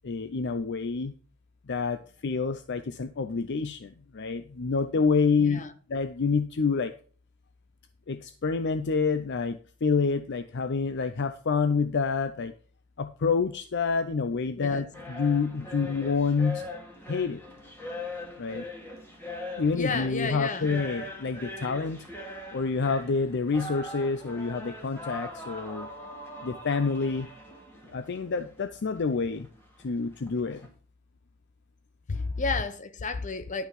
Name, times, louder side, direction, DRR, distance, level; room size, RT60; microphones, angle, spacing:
voice 1, 0.0-1.1 1.7-5.6 5.9-6.9 8.1-12.5 13.0-16.6 17.1-17.4 18.4-18.6 19.6-22.0 22.5-25.9 26.4-27.3 27.9-29.5 29.8-30.6 32.1-32.3, left 4 dB, 50° left, 0.5 m, -28 dB
voice 2, 5.4-5.7 14.5-14.9 19.8-20.8 32.1-33.7, left 4 dB, 35° left, 0.9 m, -33 dB
sound 1, 14.9-30.7, left 1 dB, 10° left, 2.5 m, -41 dB
11.5 x 5.7 x 5.7 m
head